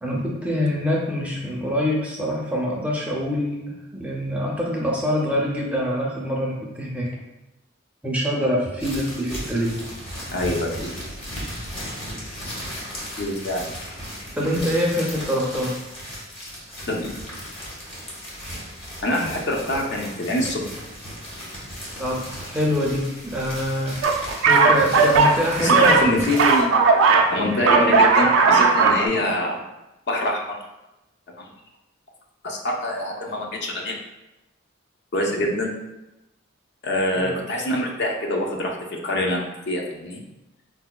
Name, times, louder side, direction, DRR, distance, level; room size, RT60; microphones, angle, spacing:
voice 1, 0.0-7.1 8.0-9.7 14.4-15.7 22.0-24.0 24.3-26.3 37.2-37.3, equal, 5° right, -3 dB, 0.5 m, -25 dB
sound 1, 8.8-26.6, equal, 25° left, 0.8 m, -36 dB
voice 2, 10.3-11.0 13.2-13.7 16.9-17.1 19.0-20.8 25.6-26.7 27.3-29.6 30.1-30.6 31.4-31.5 32.4-34.0 35.1-35.7 36.8-38.8 39.0-40.2, left 1 dB, 55° left, 0 dB, 0.5 m, -25 dB
sound 2, 24.0-27.3 27.6-29.1, right 4 dB, 65° right, 0.3 m, -17 dB
4.5 x 2.1 x 2.2 m, 0.97 s
head